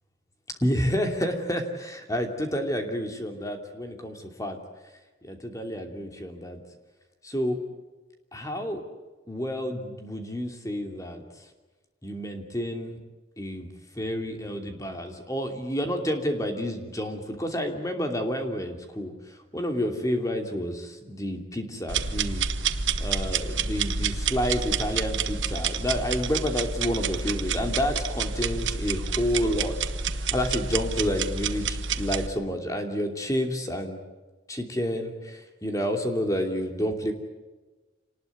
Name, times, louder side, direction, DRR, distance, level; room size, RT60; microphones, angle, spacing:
voice 1, 0.6-4.6 5.2-6.6 7.2-7.6 8.3-8.8 9.3-11.2 12.0-13.0 13.4-13.7 13.9-22.5 23.0-29.8 30.0-34.0 34.5-37.1, equal, 15° left, 4 dB, 2.8 m, -29 dB
sound 1, 21.9-32.3, right 5 dB, 80° right, 1.3 m, -29 dB
27.5 x 19.5 x 9.5 m, 1.2 s
head